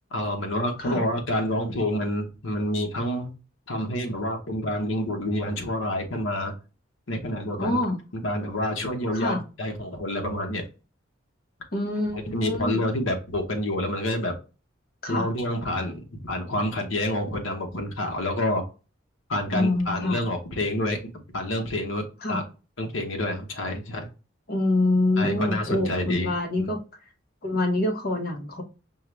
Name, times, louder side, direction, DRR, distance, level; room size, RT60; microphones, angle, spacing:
voice 1, 0.1-3.3 3.7-6.5 7.1-7.8 8.1-10.6 12.1-14.3 15.1-18.6 19.3-22.0 22.3-22.4 22.8-24.1 25.2-26.7, left 1 dB, 75° left, 2 dB, 1.0 m, -28 dB
voice 2, 7.6-8.0 9.1-9.4 11.7-12.8 15.0-15.3 19.5-20.2 22.2-22.4 24.5-26.8 27.4-28.6, left 2 dB, 50° left, 2 dB, 1.2 m, -25 dB
5.5 x 2.4 x 3.2 m, 0.31 s
head